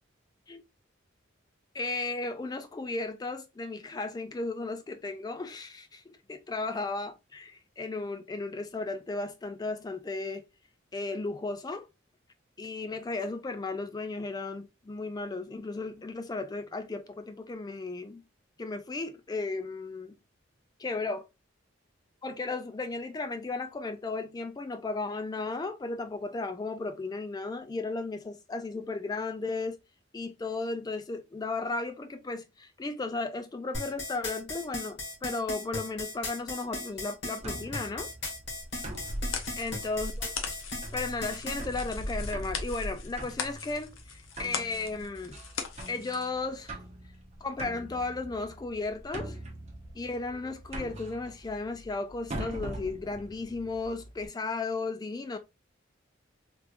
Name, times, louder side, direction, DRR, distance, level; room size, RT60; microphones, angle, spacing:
voice 1, 1.7-10.5 10.9-11.9 12.6-18.2 18.6-20.2 20.8-21.2 22.2-29.8 30.1-38.1 39.6-40.3 40.9-45.4 45.9-46.8 47.4-49.4 49.9-55.4, left 3 dB, 20° left, 0.3 m, -35 dB
sound 1, 33.7-41.6, left 2 dB, 60° left, 1.7 m, -36 dB
sound 2, 37.4-54.3, right 1 dB, 35° right, 0.8 m, -41 dB
sound 3, 38.7-46.3, left 6 dB, 80° left, 0.7 m, -41 dB
3.5 x 2.9 x 2.4 m
head